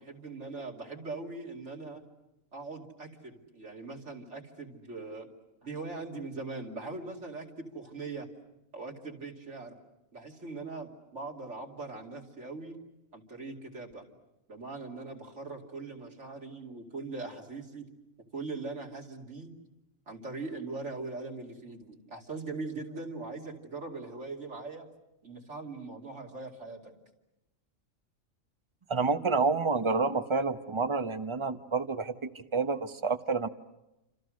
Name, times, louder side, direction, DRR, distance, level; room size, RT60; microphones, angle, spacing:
voice 1, 0.0-2.0 2.5-5.3 5.6-8.3 8.7-9.8 10.1-12.8 13.1-14.1 14.5-17.9 18.3-19.5 20.1-24.9 25.2-26.9, right 3 dB, 60° right, 0 dB, 3.1 m, -41 dB
voice 2, 28.9-33.5, right 4 dB, 25° right, 10 dB, 1.0 m, -29 dB
29.0 x 27.0 x 6.4 m, 0.94 s
omnidirectional pair, 1.3 m